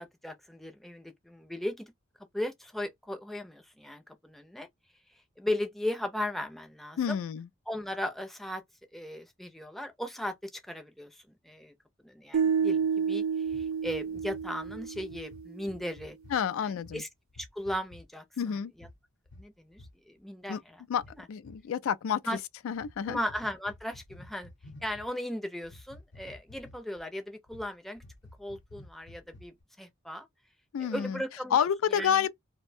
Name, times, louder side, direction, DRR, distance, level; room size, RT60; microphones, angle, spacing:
voice 1, 0.0-1.9 2.3-4.7 5.4-7.2 7.7-8.6 8.9-11.7 12.0-16.2 16.6-17.1 17.4-18.9 19.4-20.8 21.1-21.3 22.3-22.4 23.0-24.5 24.8-28.0 28.4-30.3 30.8-31.6 31.9-32.2, left 1 dB, ahead, 0.5 m, -37 dB
voice 2, 7.0-7.5 16.3-17.0 18.4-18.7 20.5-20.6 20.9-21.0 21.3-22.2 22.6-23.2 30.7-31.2 31.5-32.3, left 8 dB, 80° left, 0.3 m, -29 dB
sound 1, 12.3-15.5, right 6 dB, 75° right, 0.3 m, -30 dB
sound 2, 13.5-16.4 16.8-17.0 17.3-18.0 18.8-19.0 19.3-19.4 19.7-19.9 21.0-21.6 22.7-25.1 25.6-27.0 27.5-27.7 28.0-29.6, left 1 dB, 60° left, 0.7 m, -51 dB
2.6 x 2.1 x 2.4 m
head